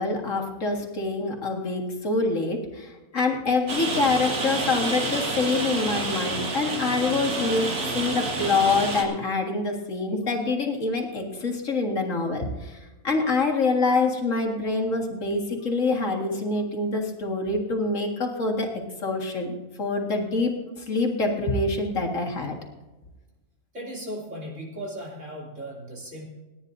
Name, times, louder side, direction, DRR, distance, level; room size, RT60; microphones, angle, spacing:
voice 1, 0.0-7.7 7.9-12.8 13.0-18.7 19.0-22.6, left 3 dB, 60° left, 1 dB, 2.2 m, -26 dB
Rain, 3.7-9.0, right 3 dB, 90° right, 2.4 m, -29 dB
voice 2, 23.7-26.2, equal, 55° right, -3 dB, 3.4 m, -37 dB
29.5 x 9.9 x 2.7 m, 1.2 s
omnidirectional pair, 1.5 m